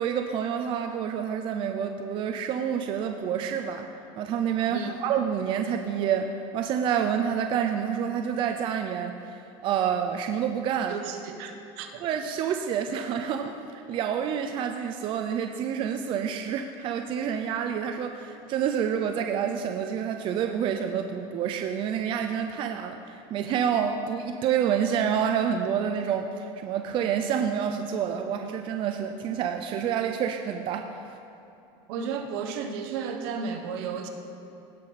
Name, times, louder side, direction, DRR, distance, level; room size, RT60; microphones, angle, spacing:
voice 1, 0.0-3.9 4.2-11.0 12.0-30.9, right 8 dB, 40° right, 5 dB, 0.5 m, -28 dB
voice 2, 10.9-12.1 31.9-34.1, right 6 dB, 70° right, 5 dB, 1.1 m, -33 dB
17.0 x 5.8 x 4.2 m, 2.9 s
cardioid pair, 145°, 13 cm